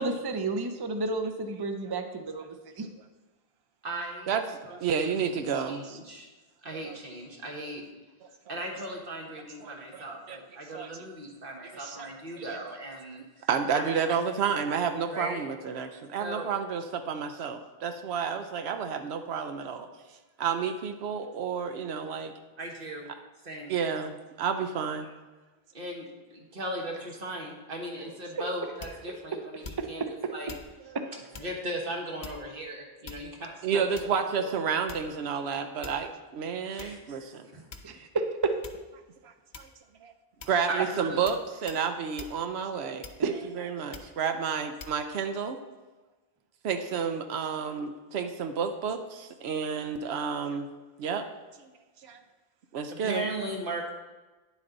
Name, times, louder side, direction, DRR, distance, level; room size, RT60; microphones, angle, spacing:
voice 1, 0.0-2.9 37.8-38.5 43.2-43.8, right 3 dB, 30° right, 6 dB, 0.6 m, -31 dB
voice 2, 3.8-4.3 4.7-6.3 6.6-7.8 8.5-13.9 15.1-15.4 16.2-16.5 22.6-23.1 23.4-23.7 25.7-30.0 30.3-30.5 31.4-33.8 34.4-34.5 36.6-37.6 40.7-41.2 52.9-53.9, right 1 dB, 60° right, 0 dB, 1.6 m, -38 dB
voice 3, 4.7-6.0 6.8-7.0 9.6-10.4 10.7-10.9 11.8-12.1 12.3-12.6 13.5-19.9 20.4-22.3 23.7-25.1 30.9-31.0 33.6-37.5 39.2-39.7 40.0-40.1 40.5-43.3 43.6-45.6 46.6-50.7 51.0-51.3 51.6-51.7 52.0-52.2 52.7-53.3, right 6 dB, 90° right, 7 dB, 0.9 m, -31 dB
sound 1, 28.8-29.2 29.6-30.0 30.5-30.7 31.3-31.6 32.2-32.6 33.0-33.5 34.0-34.3 34.9-35.2 35.8-36.1 36.8-36.9 37.7-38.1 38.6-38.9 39.5-39.9 40.4-40.6 41.3-41.4 41.7-41.9 42.2-42.4 43.0-43.4 43.9-44.2 44.8-45.0, left 4 dB, 45° left, 0.8 m, -45 dB
9.9 x 7.3 x 3.9 m, 1.2 s
omnidirectional pair, 1.0 m